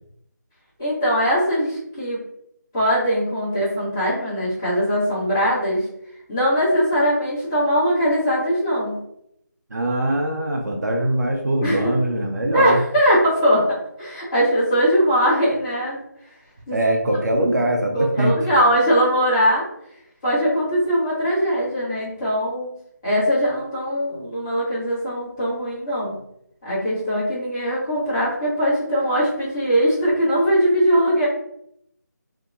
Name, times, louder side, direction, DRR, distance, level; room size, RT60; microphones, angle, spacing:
voice 1, 0.8-2.2 2.7-5.9 6.3-9.0 11.6-11.9 12.5-16.0 16.7-16.8 17.9-19.7 20.2-22.7 23.0-26.1 26.6-31.3, equal, 15° left, -11 dB, 0.9 m, -20 dB
voice 2, 9.7-12.8 16.7-18.3, right 1 dB, 65° right, 1 dB, 0.5 m, -22 dB
2.7 x 2.1 x 2.4 m, 0.74 s
figure-of-eight pair, 170°, 10 cm